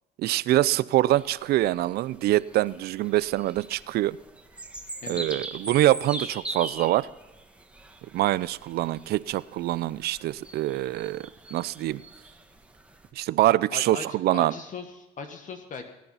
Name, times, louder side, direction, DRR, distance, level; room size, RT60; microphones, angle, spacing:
voice 1, 0.2-4.2 5.1-7.1 8.1-12.0 13.2-14.5, right 15 dB, 70° right, 19 dB, 0.5 m, -24 dB
sound 1, 1.1-13.1, right 2 dB, 5° right, 1.5 m, -42 dB
voice 2, 5.0-5.4 13.7-14.1 14.3-15.8, left 5 dB, 50° left, 6 dB, 1.5 m, -39 dB
19.5 x 9.5 x 5.6 m, 1.1 s
cardioid pair, 110°, 17 cm